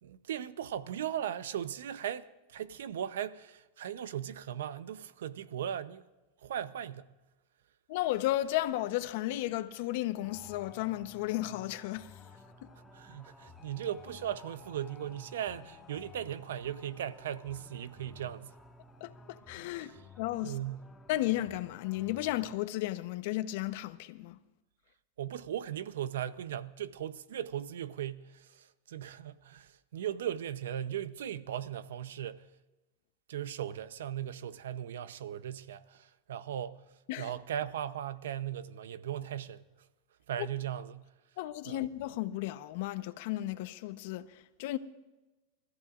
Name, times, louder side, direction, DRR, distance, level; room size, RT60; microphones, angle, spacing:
voice 1, 0.0-6.0 6.4-7.1 12.9-18.6 19.8-20.0 20.4-20.9 25.2-32.5 33.3-36.9 37.2-39.6 40.3-41.1 41.7-41.8, right 10 dB, 90° right, 0.7 m, -38 dB
voice 2, 7.9-12.1 19.0-20.5 21.1-24.4 37.1-37.3 41.4-44.8, left 15 dB, 65° left, 0.9 m, -34 dB
sound 1, 10.2-22.6, left 4 dB, 10° left, 1.4 m, -54 dB
28.5 x 14.0 x 2.5 m
supercardioid pair, 135°, 0 cm